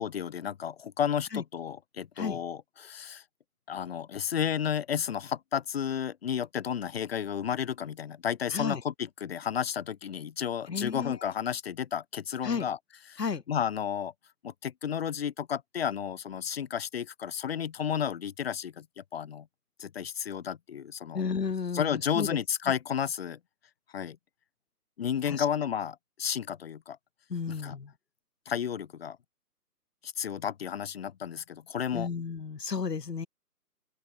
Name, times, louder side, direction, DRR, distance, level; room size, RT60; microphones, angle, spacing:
voice 1, 0.0-3.2 3.7-12.8 13.1-13.2 13.5-14.1 14.4-19.5 19.8-21.2 21.7-23.4 23.9-24.2 25.0-27.0 27.5-27.8 28.5-29.2 30.0-32.1, left 8 dB, 40° left, 3.1 m, -32 dB
voice 2, 10.7-11.2 12.4-12.7 13.2-13.4 21.1-22.4 25.2-25.5 27.3-27.9 31.9-33.3, left 5 dB, 80° left, 1.6 m, -32 dB
open air
figure-of-eight pair, 155°, 47 cm